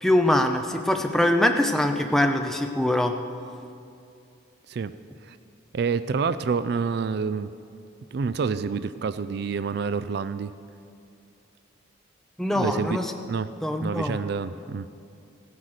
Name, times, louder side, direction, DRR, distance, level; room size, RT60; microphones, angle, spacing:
voice 1, 0.0-3.1 12.4-13.1 13.6-14.2, left 1 dB, ahead, 4 dB, 0.7 m, -23 dB
voice 2, 5.7-7.5 8.1-10.5 12.5-13.0 13.2-13.5 13.8-15.0, right 5 dB, 55° right, 13 dB, 0.3 m, -28 dB
15.0 x 9.7 x 6.5 m, 2.5 s
head